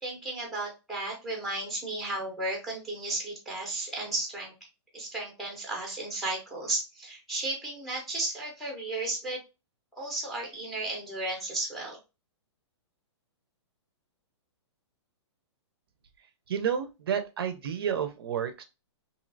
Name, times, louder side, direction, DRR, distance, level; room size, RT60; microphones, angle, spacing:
voice 1, 0.0-4.7 4.9-9.4 10.0-12.0, right 2 dB, ahead, 0 dB, 0.6 m, -34 dB
voice 2, 16.5-18.6, right 8 dB, 55° right, 9 dB, 0.5 m, -30 dB
3.0 x 2.7 x 2.5 m, 0.27 s
hypercardioid pair, 175°, 15 cm